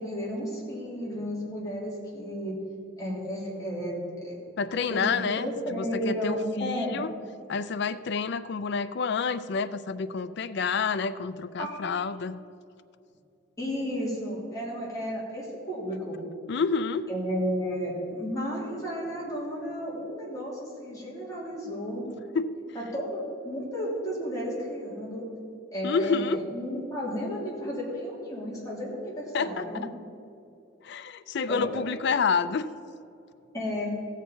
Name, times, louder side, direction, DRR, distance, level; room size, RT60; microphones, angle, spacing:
voice 1, 0.0-2.5 3.0-4.4 4.9-7.0 11.6-11.8 13.6-16.2 17.1-22.0 22.7-25.2 25.7-29.8 31.5-31.7 33.5-33.9, equal, 15° left, -6 dB, 3.1 m, -33 dB
voice 2, 4.6-7.1 7.5-12.4 16.5-17.1 22.3-22.5 25.8-26.4 29.3-29.7 30.8-32.7, left 5 dB, 60° left, 14 dB, 0.4 m, -28 dB
16.0 x 6.6 x 5.2 m, 2.6 s
head